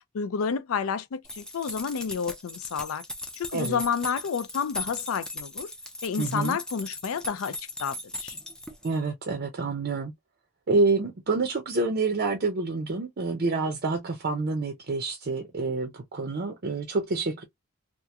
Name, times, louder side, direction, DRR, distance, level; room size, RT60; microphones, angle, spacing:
voice 1, 0.1-3.0 3.4-5.7 6.0-8.4, left 6 dB, 70° left, 0.4 m, -30 dB
sound 1, 1.2-9.0, left 1 dB, 5° left, 0.4 m, -39 dB
voice 2, 6.2-6.6 8.8-10.1 10.7-17.4, right 3 dB, 45° right, 0.5 m, -27 dB
2.8 x 2.4 x 2.2 m
head